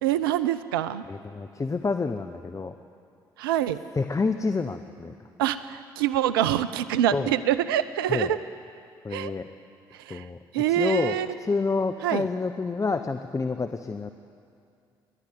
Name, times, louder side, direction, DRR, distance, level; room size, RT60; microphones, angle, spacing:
voice 1, 0.0-1.0 3.4-3.8 5.4-8.4 9.1-9.3 9.9-10.3 10.5-11.3 12.0-12.3, right 11 dB, 85° right, 14 dB, 0.6 m, -25 dB
voice 2, 1.1-2.7 3.9-5.1 7.1-7.3 8.1-8.3 9.0-9.5 10.1-10.4 10.7-11.1 11.4-14.1, left 4 dB, 25° left, 8 dB, 1.0 m, -28 dB
28.0 x 12.0 x 9.4 m, 2.4 s
hypercardioid pair, 45°, 12 cm